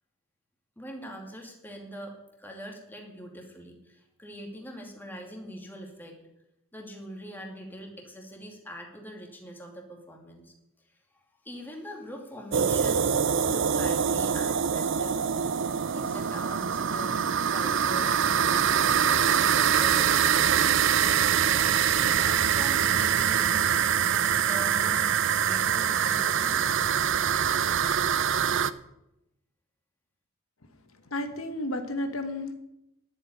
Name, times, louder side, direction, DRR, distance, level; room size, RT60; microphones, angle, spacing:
voice 1, 0.8-6.2 6.7-10.5 11.1-15.2 15.9-17.2 17.5-20.7 21.5-23.6 24.0-25.1 25.3-26.8, equal, 10° left, 1 dB, 2.6 m, -43 dB
sound 1, 12.5-28.7, right 8 dB, 65° right, 0.6 m, -24 dB
voice 2, 30.9-32.5, left 1 dB, 85° left, 7 dB, 1.5 m, -32 dB
11.0 x 8.0 x 9.8 m, 0.85 s
head